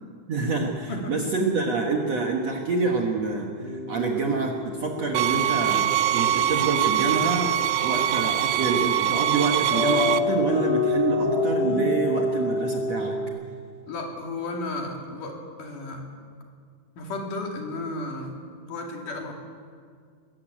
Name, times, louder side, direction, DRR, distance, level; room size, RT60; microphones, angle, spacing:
voice 1, 0.3-13.2, right 4 dB, 55° right, 0 dB, 2.1 m, -27 dB
sound 1, 3.6-13.3, left 2 dB, 80° left, 6.0 m, -29 dB
sound 2, 5.1-10.2, right 11 dB, 80° right, 2.0 m, -23 dB
voice 2, 13.9-16.0 17.0-18.4 18.7-19.3, left 2 dB, 55° left, 1 dB, 3.8 m, -33 dB
22.0 x 14.5 x 9.1 m, 2.1 s
omnidirectional pair, 4.6 m